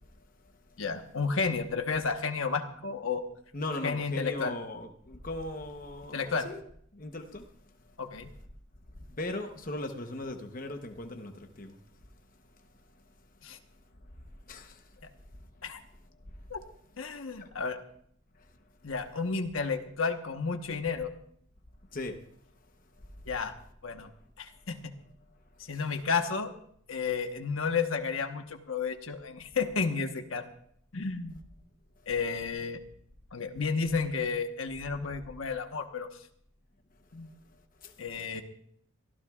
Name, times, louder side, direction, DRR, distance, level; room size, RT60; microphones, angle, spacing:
voice 1, 0.8-3.2 3.8-4.6 6.1-6.5 8.0-8.3 13.4-13.6 15.6-15.8 16.5-16.6 17.0-17.8 18.8-21.1 23.2-23.5 23.8-24.1 24.4-24.9 25.6-26.5 26.9-30.4 30.9-31.4 32.1-32.8 33.3-36.1 37.1-37.3 38.0-38.4, left 5 dB, 80° left, 1.2 m, -32 dB
voice 2, 3.5-6.6 6.9-7.5 9.1-11.8 14.5-14.8 17.4-17.5 21.9-22.2 25.7-25.8 37.8-37.9, left 2 dB, 40° left, 1.0 m, -38 dB
23.5 x 15.0 x 2.4 m
head